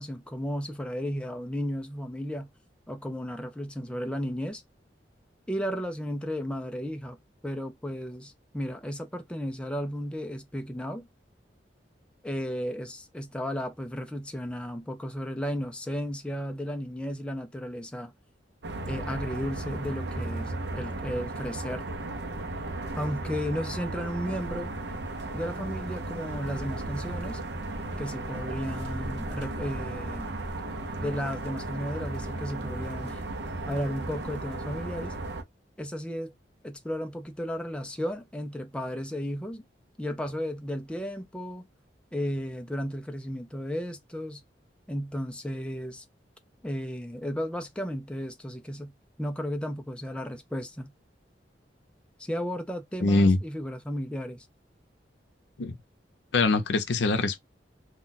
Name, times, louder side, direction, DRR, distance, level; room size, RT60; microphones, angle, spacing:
voice 1, 0.0-2.5 2.9-4.6 5.5-7.2 7.4-11.1 12.2-18.1 18.9-21.9 23.0-24.7 25.3-27.4 28.0-30.4 31.0-33.2 33.7-35.1 35.8-36.3 36.6-39.6 40.0-41.7 42.1-44.4 44.9-46.0 46.6-48.9 49.2-50.9 52.2-54.5, equal, 5° left, 0.4 m, -34 dB
sound 1, 18.6-35.4, right 2 dB, 70° right, 0.6 m, -35 dB
voice 2, 53.0-53.4 55.6-55.8 56.3-57.4, left 3 dB, 85° left, 0.6 m, -23 dB
2.3 x 2.1 x 3.8 m
head